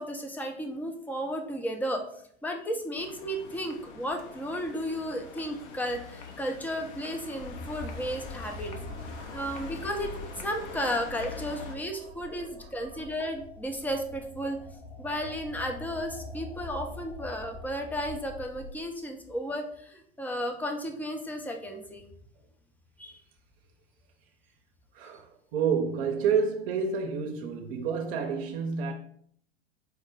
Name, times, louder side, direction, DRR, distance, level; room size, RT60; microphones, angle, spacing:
voice 1, 0.0-2.0 2.4-8.8 9.3-10.1 10.4-14.6 15.0-22.1 23.0-23.2, equal, 5° left, 0.6 m, -34 dB
sound 1, 3.0-11.8, left 4 dB, 55° left, 0.9 m, -44 dB
sound 2, 7.4-18.7, left 2 dB, 30° left, 0.9 m, -44 dB
voice 2, 8.6-9.7 10.0-10.1 10.5-11.0 11.6-13.0 24.9-28.9, right 6 dB, 55° right, 0.7 m, -31 dB
4.8 x 2.1 x 4.7 m
hypercardioid pair, 95°, 33 cm